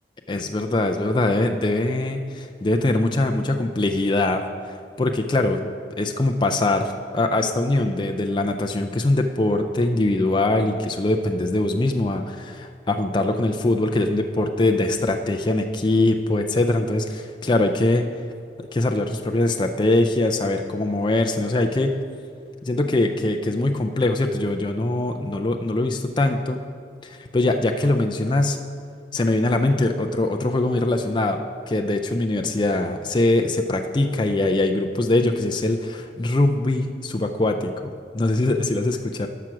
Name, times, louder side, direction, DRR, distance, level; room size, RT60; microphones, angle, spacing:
voice 1, 0.3-5.6 6.0-18.1 18.6-22.0 22.6-26.6 27.0-28.6 29.1-31.4 31.7-39.3, left 2 dB, 25° left, 5 dB, 0.4 m, -22 dB
12.5 x 5.9 x 6.1 m, 2.3 s
head